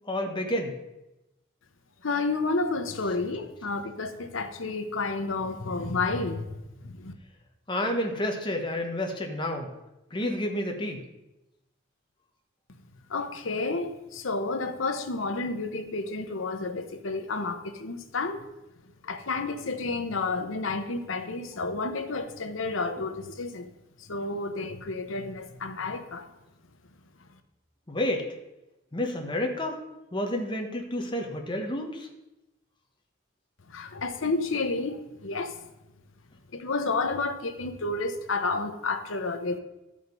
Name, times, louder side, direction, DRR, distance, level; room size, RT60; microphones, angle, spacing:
voice 1, 0.1-0.7 7.7-9.7 10.1-11.0 27.9-28.3 28.9-29.8 30.1-32.1, left 1 dB, 25° left, 3 dB, 1.2 m, -30 dB
voice 2, 2.0-7.1 13.1-18.4 19.0-23.7 24.0-26.3 33.7-35.6 36.5-39.6, left 3 dB, 85° left, 7 dB, 0.9 m, -31 dB
12.5 x 5.1 x 5.3 m, 0.96 s
head